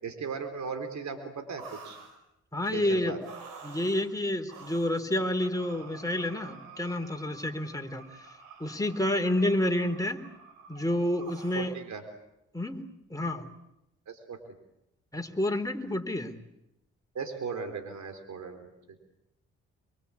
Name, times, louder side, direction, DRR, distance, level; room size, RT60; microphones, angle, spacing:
voice 1, 0.0-2.0 2.7-3.2 11.5-12.0 14.1-14.4 17.1-19.0, right 5 dB, 65° right, 7 dB, 4.2 m, -37 dB
sound 1, 1.6-2.2 2.6-2.7 3.2-4.1 4.5-5.0 5.4-11.7, right 4 dB, 90° right, 4.7 m, -49 dB
voice 2, 2.5-3.2 3.6-8.3 8.6-10.2 10.7-11.7 12.5-13.5 15.1-16.3, left 1 dB, 10° left, 4 dB, 4.1 m, -29 dB
26.0 x 24.0 x 8.6 m, 0.87 s
supercardioid pair, 45°, 30 cm